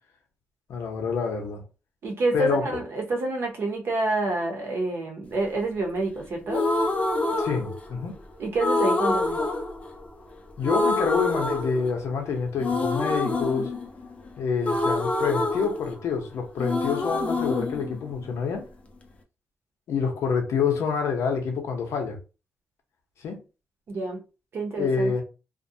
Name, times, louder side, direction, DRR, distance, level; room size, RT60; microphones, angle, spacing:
voice 1, 0.7-1.6 2.3-2.8 7.4-8.1 10.6-13.7 14.4-18.6 19.9-22.2 23.2-23.4 24.8-25.2, left 5 dB, 85° left, 0.7 m, -27 dB
voice 2, 2.0-6.6 8.4-9.4 23.9-24.2 24.5-25.1, right 2 dB, 55° right, 0.7 m, -27 dB
sound 1, 6.5-8.1 8.6-10.3 10.6-12.2 12.6-16.3 16.6-18.6, left 2 dB, 25° left, 0.4 m, -26 dB
2.4 x 2.2 x 2.7 m
wide cardioid pair, 165°, 5 cm